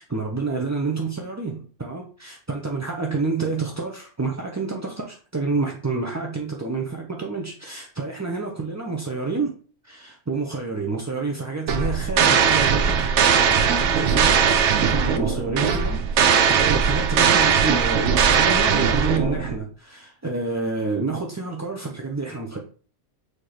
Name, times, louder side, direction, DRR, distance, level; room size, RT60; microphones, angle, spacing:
voice 1, 0.0-9.5 9.8-22.6, right 4 dB, 20° right, 0.5 m, -28 dB
sound 1, 11.7-19.6, right 7 dB, 75° right, 1.0 m, -19 dB
6.4 x 3.0 x 4.9 m
omnidirectional pair, 1.2 m